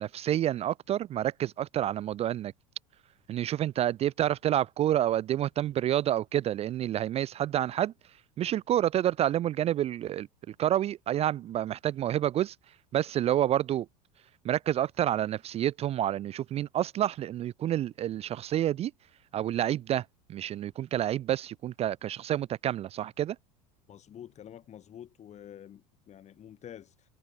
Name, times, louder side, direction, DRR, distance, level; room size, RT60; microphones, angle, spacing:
voice 1, 0.0-2.5 3.3-7.9 8.4-12.6 12.9-13.9 14.4-18.9 19.3-23.4, right 12 dB, 30° right, 0.6 m, -29 dB
voice 2, 23.9-26.9, left 10 dB, 30° left, 5.0 m, -48 dB
figure-of-eight pair, 75°, 21 cm